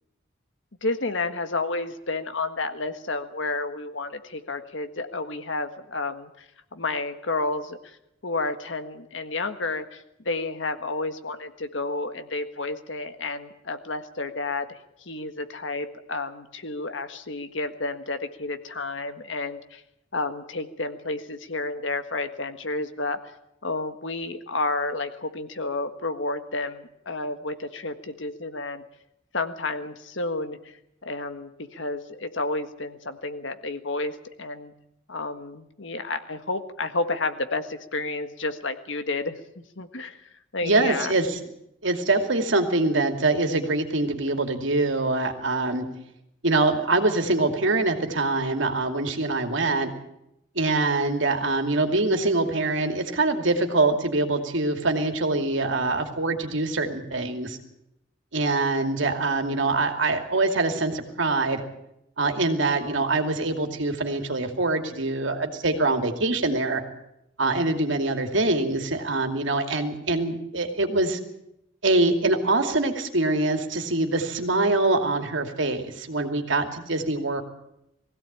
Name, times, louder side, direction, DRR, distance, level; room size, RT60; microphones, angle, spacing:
voice 1, 0.8-6.4 6.7-8.0 8.2-19.8 20.1-23.2 23.6-28.8 29.3-30.8 31.0-34.7 35.1-41.1, left 3 dB, 75° left, 8 dB, 1.7 m, -31 dB
voice 2, 40.6-41.4 41.8-45.9 46.4-49.9 50.5-57.6 58.3-61.6 62.2-66.8 67.4-71.2 71.8-77.4, right 2 dB, 75° right, 5 dB, 2.6 m, -24 dB
20.0 x 16.5 x 8.8 m, 0.82 s
head